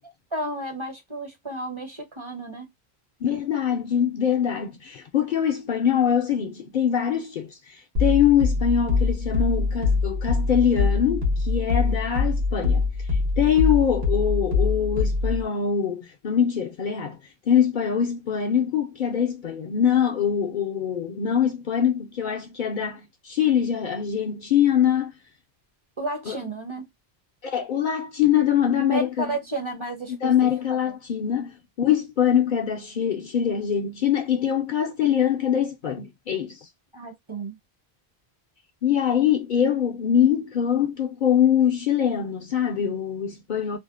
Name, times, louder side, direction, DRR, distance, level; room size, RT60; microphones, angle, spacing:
voice 1, 0.3-2.7 26.0-26.9 28.8-30.3 30.7-30.9 36.9-37.6, right 2 dB, 35° right, 0.6 m, -32 dB
voice 2, 3.2-12.9 13.4-17.2 17.5-25.1 26.3-26.4 27.4-29.4 30.1-36.7 38.8-43.8, left 9 dB, 60° left, 0.6 m, -23 dB
sound 1, 8.0-15.5, left 4 dB, 75° right, 1.2 m, -24 dB
2.6 x 2.0 x 2.3 m
omnidirectional pair, 1.1 m